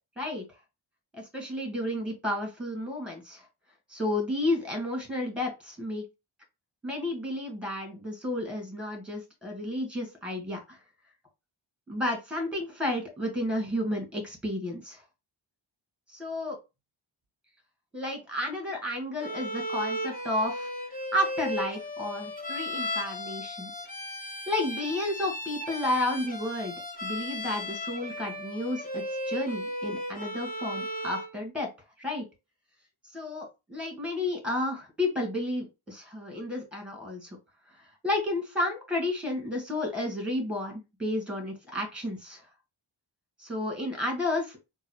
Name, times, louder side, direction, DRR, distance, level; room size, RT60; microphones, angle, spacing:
voice 1, 1.1-3.4 3.9-6.0 6.8-10.8 11.9-15.0 16.1-16.6 17.9-20.7 21.1-23.7 24.5-26.7 27.0-31.7 32.0-32.2 33.1-37.4 37.7-42.4 43.4-44.6, left 1 dB, ahead, 2 dB, 1.6 m, -32 dB
Bowed string instrument, 19.2-31.3, left 1 dB, 20° left, 1.0 m, -35 dB
3.9 x 2.4 x 3.0 m, 0.26 s
wide cardioid pair, 75°, 48 cm